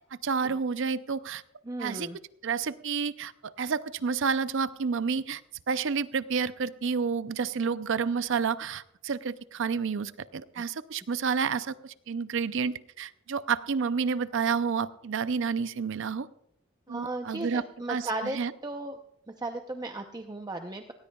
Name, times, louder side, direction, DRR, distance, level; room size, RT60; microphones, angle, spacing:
voice 1, 0.2-1.4 1.8-2.1 2.4-5.4 5.7-16.3 16.9-17.6 17.9-18.5, right 5 dB, 65° right, 14 dB, 0.5 m, -30 dB
voice 2, 1.7-2.2 16.9-19.0 19.4-20.9, right 2 dB, 20° right, 4 dB, 0.7 m, -36 dB
18.5 x 18.5 x 2.3 m, 0.78 s
head